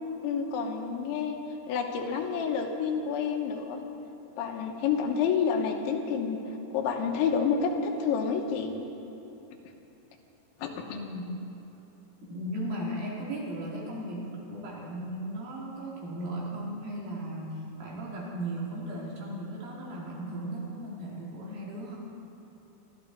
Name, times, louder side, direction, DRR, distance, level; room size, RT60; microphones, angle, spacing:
voice 1, 0.0-1.4 1.7-3.8 4.4-6.4 6.7-8.8 10.6-10.7, left 6 dB, 85° left, 3 dB, 3.5 m, -29 dB
voice 2, 10.9-11.4 12.3-22.0, right 1 dB, 55° right, -4 dB, 3.9 m, -36 dB
23.5 x 14.0 x 4.0 m, 3.0 s
omnidirectional pair, 5.3 m